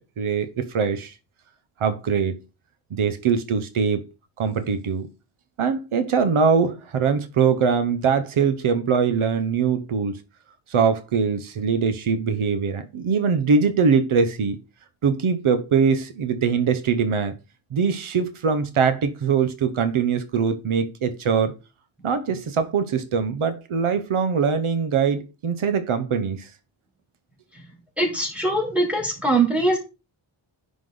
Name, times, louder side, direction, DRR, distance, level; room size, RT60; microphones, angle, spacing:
voice 1, 0.2-1.1 1.8-2.4 2.9-4.0 4.4-5.1 5.6-10.2 10.7-14.6 15.0-17.3 17.7-21.5 22.0-26.5, right 6 dB, 85° right, 1.4 m, -22 dB
voice 2, 28.0-29.8, right 2 dB, 5° right, 4.0 m, -22 dB
10.5 x 5.9 x 4.0 m
wide cardioid pair, 160°, 48 cm